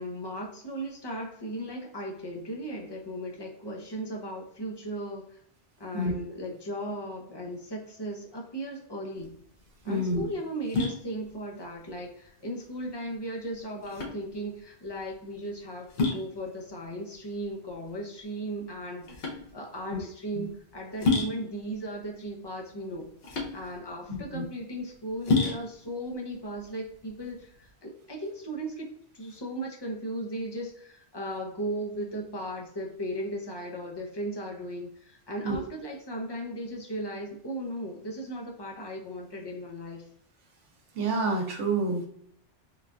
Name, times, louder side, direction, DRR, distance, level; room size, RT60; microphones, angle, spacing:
voice 1, 0.0-5.4 5.8-9.4 9.8-23.1 23.5-28.9 29.1-40.0, right 1 dB, 35° left, -1 dB, 0.4 m, -36 dB
sound 1, 9.2-27.7, left 3 dB, 60° left, 0.9 m, -33 dB
voice 2, 9.9-10.2 19.9-20.0 20.3-20.5 24.1-24.4 35.4-35.6 40.9-42.0, right 2 dB, 85° right, 2 dB, 1.1 m, -28 dB
3.8 x 2.2 x 2.5 m, 0.68 s
omnidirectional pair, 1.2 m